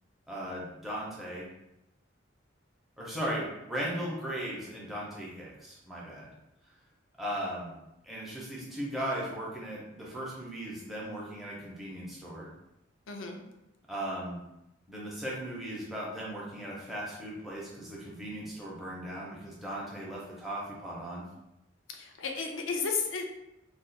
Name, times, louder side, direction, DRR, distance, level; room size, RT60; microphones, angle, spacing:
voice 1, 0.3-1.5 3.0-6.3 7.2-7.7 8.0-12.5 13.9-14.4 14.9-21.2, right 1 dB, ahead, -6 dB, 0.6 m, -37 dB
voice 2, 13.1-13.4 22.0-23.2, left 5 dB, 85° left, 3 dB, 0.5 m, -33 dB
2.4 x 2.3 x 3.9 m, 0.90 s
head